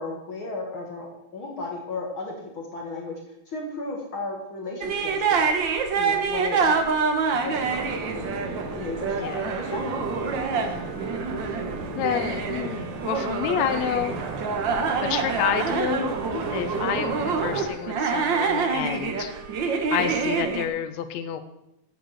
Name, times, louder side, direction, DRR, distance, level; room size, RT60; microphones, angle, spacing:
voice 1, 0.0-3.1 3.5-5.4 6.0-6.8 7.4-8.2 8.5-10.7 16.3-16.6, left 3 dB, 50° left, 0 dB, 2.3 m, -35 dB
sound 1, 4.8-20.7, right 5 dB, 55° right, 1.4 m, -27 dB
sound 2, 7.5-17.7, right 3 dB, 90° right, 3.1 m, -35 dB
voice 2, 11.9-14.2 15.0-16.2 16.5-19.3 19.9-21.4, left 10 dB, 75° left, 8 dB, 2.1 m, -29 dB
11.0 x 8.2 x 6.4 m, 0.85 s
omnidirectional pair, 3.3 m